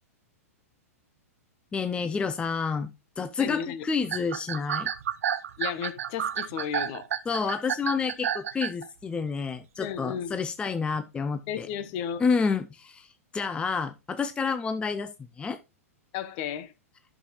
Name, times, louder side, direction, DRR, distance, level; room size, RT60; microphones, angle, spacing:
voice 1, 1.7-2.9 3.2-4.9 7.3-11.7 12.2-15.6, left 5 dB, 15° left, 0.5 m, -29 dB
voice 2, 3.4-3.8 5.6-7.1 9.8-10.4 11.5-12.2 16.1-16.7, left 8 dB, 45° left, 1.1 m, -33 dB
sound 1, 4.0-8.9, right 9 dB, 70° right, 0.5 m, -30 dB
11.0 x 6.6 x 3.0 m
hypercardioid pair, 105°, 8 cm